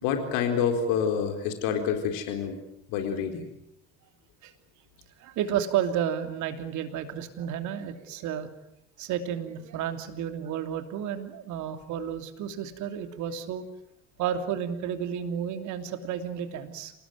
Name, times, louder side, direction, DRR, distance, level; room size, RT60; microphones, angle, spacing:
voice 1, 0.0-2.6 2.9-3.5, left 7 dB, 65° left, 5 dB, 4.3 m, -27 dB
voice 2, 5.2-8.5 9.0-13.6 14.2-16.9, right 9 dB, 55° right, 8 dB, 2.9 m, -31 dB
28.0 x 19.0 x 9.3 m, 0.80 s
figure-of-eight pair, 60°, 35 cm